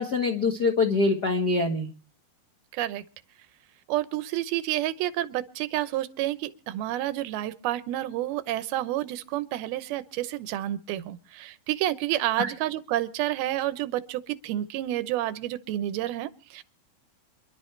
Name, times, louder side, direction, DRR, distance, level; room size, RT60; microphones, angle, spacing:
voice 1, 0.0-1.9 12.4-12.5, left 3 dB, 65° left, 4 dB, 0.9 m, -24 dB
voice 2, 2.7-3.0 3.9-16.6, right 14 dB, 90° right, 14 dB, 2.8 m, -29 dB
27.0 x 11.5 x 3.3 m, 0.37 s
omnidirectional pair, 4.3 m